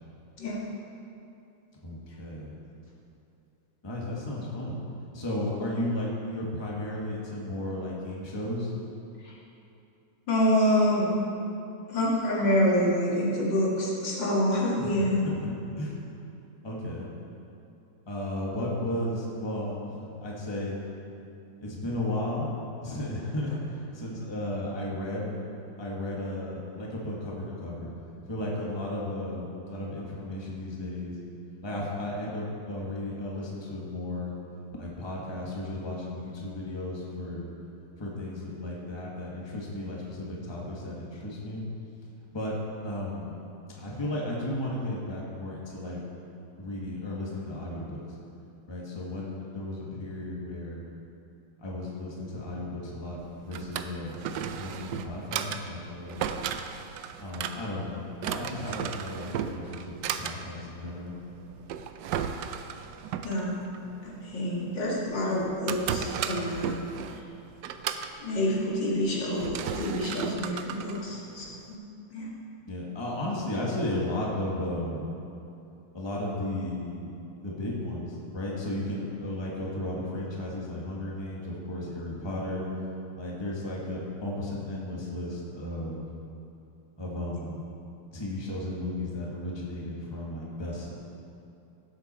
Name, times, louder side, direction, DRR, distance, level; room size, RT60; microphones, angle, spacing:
voice 1, 1.8-2.6 3.8-4.8 5.1-8.7 14.8-15.5 15.8-16.0 16.6-17.1 18.0-20.8 21.6-22.5 22.8-25.3 25.8-27.9 28.2-31.2 31.6-34.3 34.8-37.5 38.0-41.6 42.3-42.6 42.8-43.3 43.7-46.0 46.6-48.0 48.7-50.9 51.6-56.2 57.2-61.2 72.7-75.1 75.9-77.1 77.4-82.7 83.1-86.1 87.0-87.7 88.1-90.9, left 1 dB, 15° left, -4 dB, 1.6 m, -34 dB
voice 2, 10.3-11.2 11.9-15.3 63.2-63.6 64.0-66.9 68.2-71.8 72.1-72.3, left 1 dB, 70° left, -5 dB, 2.6 m, -27 dB
Drawer open or close, 53.2-71.7, right 8 dB, 75° right, 1.2 m, -36 dB
16.5 x 8.1 x 4.4 m, 2.7 s
omnidirectional pair, 2.1 m